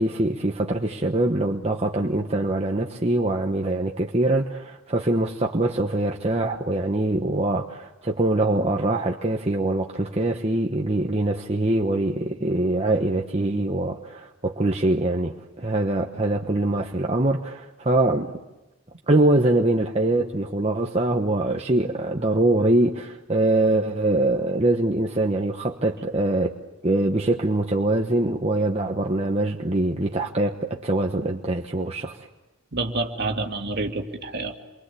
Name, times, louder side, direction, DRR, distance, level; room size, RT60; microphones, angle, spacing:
voice 1, 0.0-18.3 19.1-26.5 26.8-32.2, right 2 dB, 30° right, 1 dB, 1.2 m, -23 dB
voice 2, 32.7-34.6, right 2 dB, 50° right, 3 dB, 2.4 m, -28 dB
28.5 x 24.0 x 8.4 m, 1.0 s
head